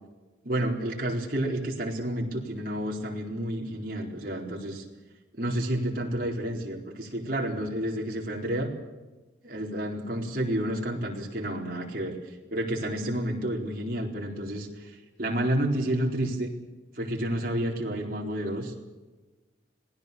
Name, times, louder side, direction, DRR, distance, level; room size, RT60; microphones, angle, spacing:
voice 1, 0.4-4.8 5.4-8.7 9.4-12.2 12.5-14.9 15.2-16.5 17.0-18.8, right 1 dB, 50° right, -1 dB, 4.4 m, -30 dB
26.0 x 18.5 x 7.0 m, 1.2 s
head